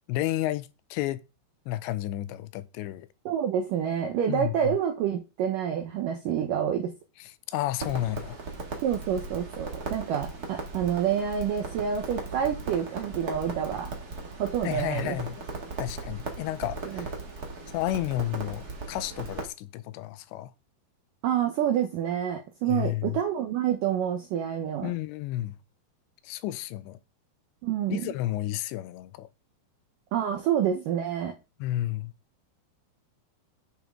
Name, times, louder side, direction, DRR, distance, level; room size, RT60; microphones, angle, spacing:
voice 1, 0.1-1.2 1.7-3.1 4.3-4.8 7.5-8.4 14.6-15.4 15.8-17.1 17.7-20.5 22.7-23.2 24.8-25.5 26.2-27.0 27.9-29.3 31.6-32.1, left 15 dB, 85° left, 2.9 m, -31 dB
voice 2, 3.3-6.9 8.8-13.9 14.4-15.2 16.8-17.1 21.2-24.9 27.6-28.1 30.1-31.4, right 9 dB, 80° right, 1.9 m, -28 dB
Crackle, 7.8-19.5, right 3 dB, 45° right, 1.2 m, -38 dB
10.5 x 6.0 x 3.6 m
omnidirectional pair, 5.1 m